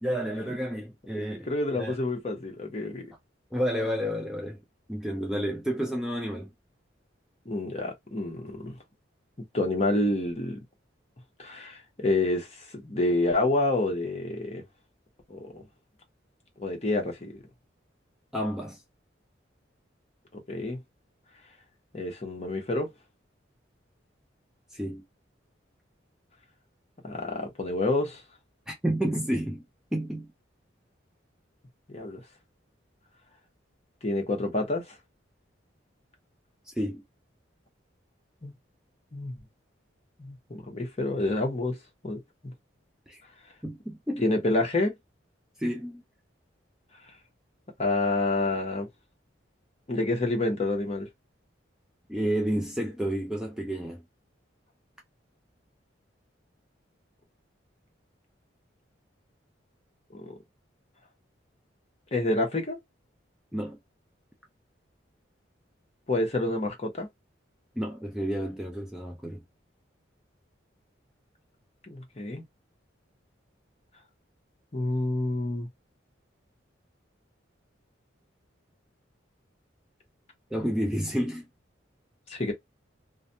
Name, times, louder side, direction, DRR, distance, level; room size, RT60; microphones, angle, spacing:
voice 1, 0.0-1.5 1.8-2.0 3.5-4.6 4.9-6.5 18.3-18.8 24.7-25.0 28.7-29.6 29.9-30.3 36.8-37.0 43.1-43.2 43.6-44.3 45.6-46.0 52.1-54.0 63.5-63.8 67.8-69.4 80.5-81.5, equal, 5° right, 0.4 m, -30 dB
voice 2, 1.5-3.1 7.5-8.8 9.5-10.6 11.4-12.5 12.8-14.6 15.3-15.6 16.6-17.3 20.5-20.8 21.9-22.9 27.0-28.2 31.9-32.2 34.0-34.8 38.4-38.5 39.1-39.3 40.2-41.7 42.0-42.5 44.2-44.9 47.8-48.9 49.9-51.1 60.1-60.3 62.1-62.8 66.1-67.1 71.9-72.4 74.7-75.7 82.3-82.5, left 2 dB, 35° left, 0.8 m, -28 dB
2.4 x 2.2 x 2.6 m
head